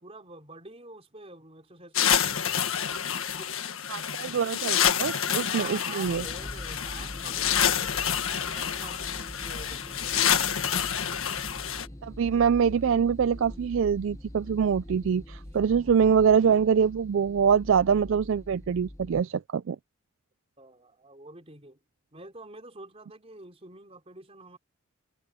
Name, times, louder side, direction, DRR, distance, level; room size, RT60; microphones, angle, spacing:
voice 1, 0.0-2.7 3.4-3.6 5.5-8.1 8.5-10.1 11.8-12.0 20.6-21.8 22.1-24.6, right 2 dB, 30° right, 4.2 m, -47 dB
sound 1, 1.9-11.9, left 9 dB, 75° left, 1.6 m, -28 dB
voice 2, 3.9-6.2 12.0-19.8, right 7 dB, 65° right, 0.4 m, -24 dB
sound 2, 6.0-19.2, left 1 dB, 15° left, 1.0 m, -43 dB
head